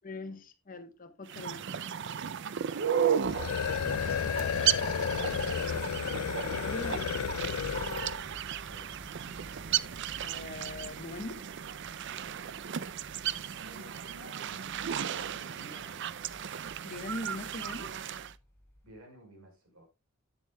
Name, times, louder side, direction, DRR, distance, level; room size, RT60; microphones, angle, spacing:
voice 1, 0.0-1.6 6.6-7.3 10.2-11.4 16.8-17.9, left 2 dB, 40° left, 1.0 m, -41 dB
sound 1, 1.3-18.3, right 9 dB, 55° right, 0.4 m, -34 dB
sound 2, 3.2-8.2, left 8 dB, 90° left, 0.4 m, -32 dB
voice 2, 3.8-4.5 8.7-8.9 12.7-12.9 13.6-14.7 15.1-16.1 18.8-19.8, equal, 90° right, 5.0 m, -54 dB
sound 3, 7.0-19.0, equal, 10° left, 3.7 m, -54 dB
11.0 x 9.0 x 2.2 m
head